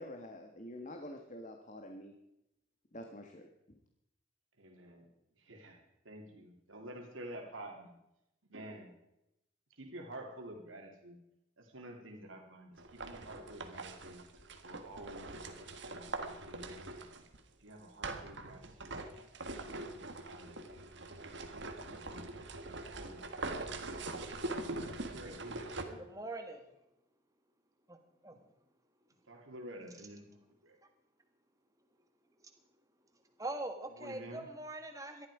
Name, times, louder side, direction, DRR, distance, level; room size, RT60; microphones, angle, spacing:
voice 1, 0.0-2.1 2.9-3.5, left 1 dB, 35° left, 4 dB, 1.5 m, -47 dB
voice 2, 4.6-5.1 5.3-7.9 8.5-8.9 9.7-11.2 11.6-14.2 14.6-16.1 16.4-17.3 17.6-19.0 19.5-21.1 21.4-21.5 21.8-22.4 22.9-23.3 24.8-26.0 28.3-28.4 29.3-30.4 34.0-34.5, right 1 dB, 75° right, 2 dB, 2.9 m, -50 dB
sound 1, 12.8-17.4 18.0-25.8, right 2 dB, 60° right, 1.6 m, -43 dB
voice 3, 26.0-26.7 27.9-28.0 28.2-28.4 32.4-32.5 33.4-35.3, right 2 dB, 15° right, 6 dB, 1.7 m, -42 dB
18.5 x 12.5 x 4.9 m, 0.86 s
head